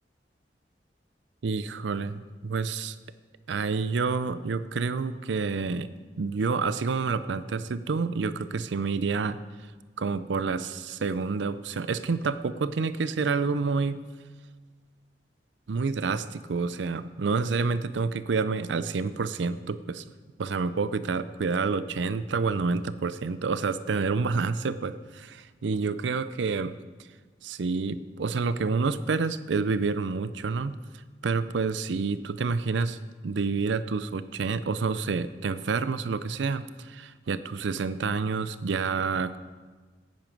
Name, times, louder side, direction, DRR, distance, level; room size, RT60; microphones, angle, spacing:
voice 1, 1.4-3.0 3.5-5.9 6.2-9.4 10.0-14.1 15.7-20.0 20.4-26.8 27.4-30.8 31.2-33.0 33.2-39.4, right 4 dB, 85° right, 14 dB, 0.5 m, -28 dB
11.0 x 9.0 x 5.2 m, 1.4 s
head